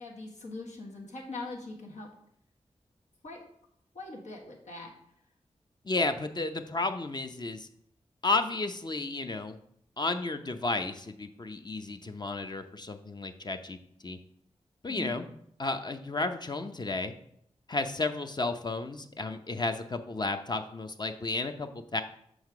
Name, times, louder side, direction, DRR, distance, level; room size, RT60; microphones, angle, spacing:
voice 1, 0.0-2.1 3.2-3.4 3.9-4.9 14.9-15.2, left 2 dB, 80° left, -1 dB, 1.4 m, -41 dB
voice 2, 5.8-7.7 8.2-9.6 10.0-13.8 14.0-14.2 14.8-15.2 15.6-17.1 17.7-22.0, left 3 dB, 35° left, 7 dB, 0.7 m, -32 dB
6.4 x 4.0 x 4.8 m, 0.70 s
cardioid pair, 45°, 12 cm